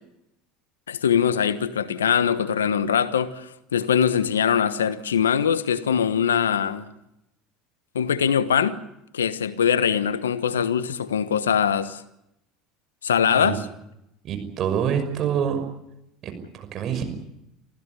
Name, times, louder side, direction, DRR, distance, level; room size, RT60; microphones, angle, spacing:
voice 1, 0.9-6.9 7.9-8.8 9.1-12.0 13.0-13.7, left 8 dB, 85° left, 1.2 m, -22 dB
voice 2, 14.2-15.6 16.2-17.0, right 8 dB, 50° right, 5.9 m, -26 dB
26.5 x 15.5 x 9.7 m
hypercardioid pair, 75°, 0 cm